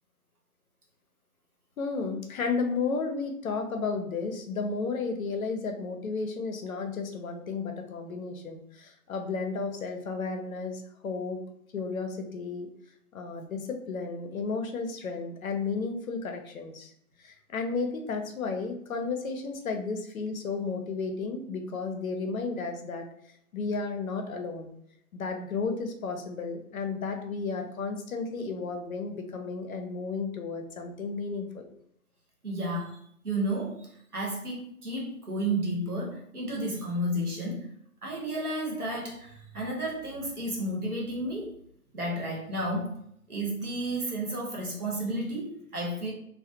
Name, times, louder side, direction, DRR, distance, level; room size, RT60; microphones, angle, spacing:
voice 1, 1.8-11.4 11.7-12.7 13.1-16.9 17.2-23.1 23.5-24.7 25.1-31.7, left 4 dB, 70° left, 4 dB, 0.5 m, -33 dB
voice 2, 32.4-33.0 33.2-37.7 38.0-41.5 41.9-42.9 43.3-46.1, right 1 dB, 85° right, -2 dB, 1.0 m, -32 dB
2.4 x 2.1 x 2.7 m, 0.69 s
figure-of-eight pair, 125°, 44 cm